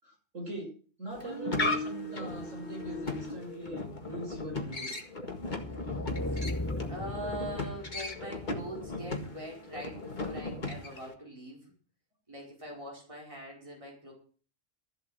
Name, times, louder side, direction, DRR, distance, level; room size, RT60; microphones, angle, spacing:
voice 1, 0.0-0.7 1.0-4.9, right 1 dB, 85° right, 1 dB, 6.9 m, -41 dB
sound 1, 1.1-11.1, left 2 dB, 40° left, 1.9 m, -37 dB
sound 2, 5.3-8.3, left 1 dB, 20° left, 0.5 m, -36 dB
voice 2, 6.9-11.7 12.3-14.1, right 1 dB, 25° right, -2 dB, 4.7 m, -42 dB
13.5 x 7.8 x 7.8 m, 0.42 s
omnidirectional pair, 1.3 m